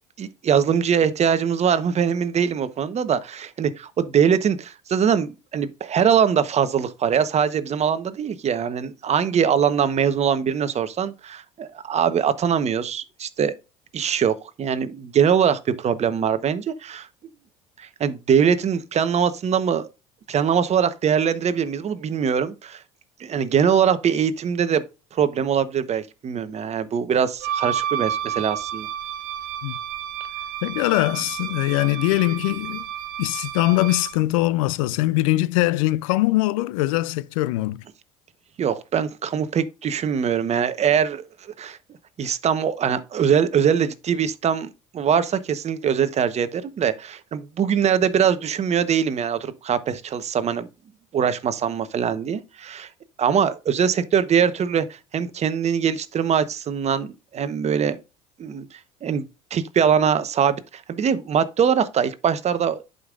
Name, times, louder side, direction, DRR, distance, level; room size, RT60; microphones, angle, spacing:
voice 1, 0.2-13.5 13.9-17.1 17.8-19.9 20.3-22.8 23.2-24.8 25.1-28.9 38.6-41.8 42.2-50.7 51.1-52.9 53.2-54.9 55.1-58.0 58.4-58.7 59.0-59.3 59.5-62.9, right 7 dB, 40° right, 1.0 m, -22 dB
Wind instrument woodwind instrument, 27.4-34.2, right 10 dB, 60° right, 1.7 m, -31 dB
voice 2, 30.6-32.8 33.2-37.8, left 18 dB, 80° left, 0.4 m, -22 dB
11.0 x 5.4 x 2.5 m
hypercardioid pair, 75°, 17 cm